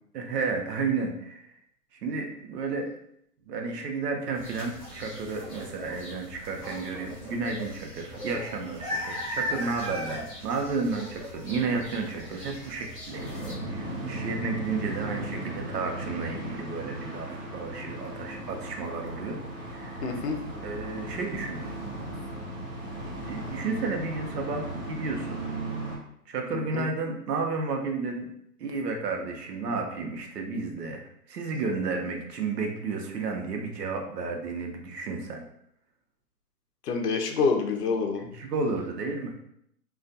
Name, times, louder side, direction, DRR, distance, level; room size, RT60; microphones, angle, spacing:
voice 1, 0.1-1.5 2.0-2.9 3.5-13.3 13.6-19.4 19.7-20.2 20.6-21.7 23.2-25.4 26.3-28.3 28.6-35.4 38.2-39.3, right 4 dB, 75° right, 2 dB, 0.7 m, -32 dB
sound 1, 4.3-13.5, equal, 20° left, 0.6 m, -38 dB
sound 2, 13.1-26.0, right 1 dB, 35° right, 1.0 m, -37 dB
voice 2, 20.0-20.4 26.5-26.9 36.8-38.2, left 4 dB, 75° left, 3 dB, 0.6 m, -27 dB
2.4 x 2.2 x 2.5 m, 0.71 s
hypercardioid pair, 170°, 48 cm